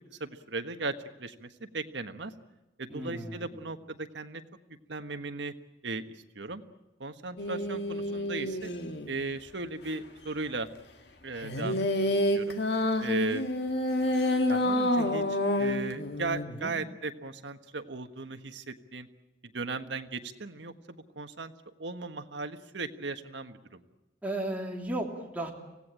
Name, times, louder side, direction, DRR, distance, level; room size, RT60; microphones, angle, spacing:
voice 1, 0.2-2.3 2.8-4.4 4.9-5.5 5.8-6.6 7.0-8.7 9.1-10.7 11.2-11.8 12.3-12.6 13.0-13.4 14.5-19.1 19.5-21.5 21.8-23.8, right 3 dB, 75° right, 8 dB, 1.4 m, -37 dB
voice 2, 2.9-3.5 16.5-16.7 24.2-25.5, right 1 dB, 10° right, 0 dB, 3.1 m, -35 dB
sound 1, 7.4-9.1 11.4-16.4, left 1 dB, 65° left, 1.9 m, -28 dB
25.0 x 17.5 x 9.0 m, 1.0 s
head